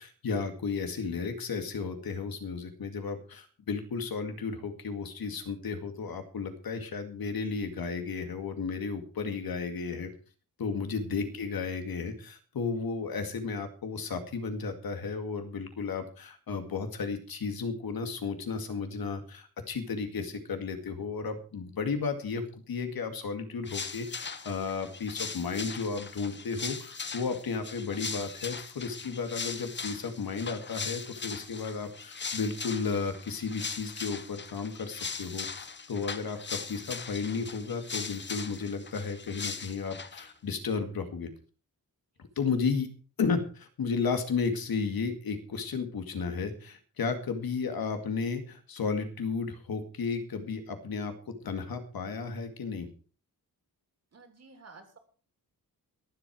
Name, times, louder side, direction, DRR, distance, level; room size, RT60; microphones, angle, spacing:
voice 1, 0.0-10.1 10.6-41.3 42.4-42.9 43.2-52.9, left 5 dB, 80° left, 7 dB, 2.2 m, -33 dB
sound 1, 23.7-40.3, left 5 dB, 30° left, 0.9 m, -40 dB
voice 2, 54.1-55.0, right 3 dB, 45° right, 6 dB, 3.1 m, -54 dB
23.0 x 7.8 x 4.7 m, 0.39 s
wide cardioid pair, 175°, 36 cm